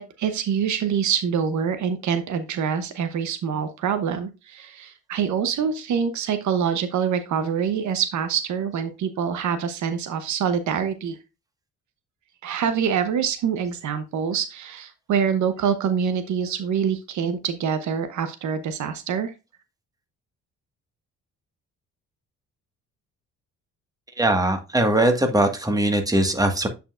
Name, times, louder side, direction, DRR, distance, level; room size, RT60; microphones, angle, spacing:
voice 1, 0.0-11.2 12.4-19.3, right 7 dB, 70° right, 10 dB, 0.9 m, -25 dB
voice 2, 24.2-26.7, right 1 dB, 10° right, 5 dB, 1.6 m, -21 dB
8.8 x 5.4 x 2.5 m, 0.27 s
cardioid pair, 90°, 30 cm